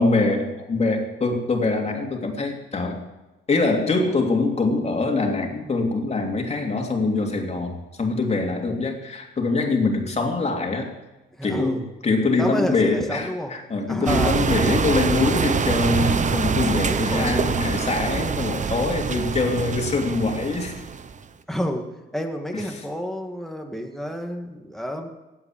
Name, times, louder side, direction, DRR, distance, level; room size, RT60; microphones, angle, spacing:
voice 1, 0.0-3.0 3.5-10.9 11.4-20.8 22.5-22.6, left 3 dB, 35° left, 2 dB, 3.0 m, -24 dB
voice 2, 11.3-11.9 12.3-13.5 13.9-14.4 16.8-17.5 21.5-21.9 22.1-25.1, equal, ahead, 3 dB, 2.3 m, -30 dB
sound 1, 14.1-21.2, right 6 dB, 40° right, 0.9 m, -25 dB
16.5 x 8.6 x 7.6 m, 1.1 s
cardioid pair, 90°, 20 cm